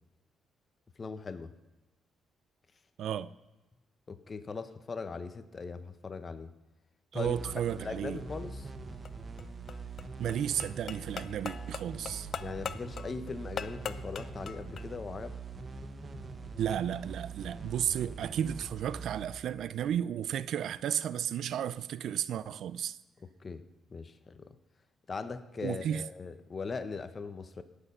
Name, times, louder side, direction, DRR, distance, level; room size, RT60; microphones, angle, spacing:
voice 1, 1.0-1.5 4.1-6.5 7.1-7.4 7.8-8.7 12.4-15.4 23.2-23.6 23.9-24.6 25.1-27.6, left 4 dB, 35° left, 0.9 m, -40 dB
voice 2, 3.0-3.3 7.1-8.2 10.2-12.3 16.6-23.0 25.6-26.0, right 9 dB, 75° right, 0.4 m, -33 dB
sound 1, 7.2-20.5, right 4 dB, 35° right, 1.1 m, -44 dB
sound 2, 8.9-14.9, left 7 dB, 55° left, 0.5 m, -42 dB
17.5 x 6.8 x 5.5 m
cardioid pair, 90°, 0 cm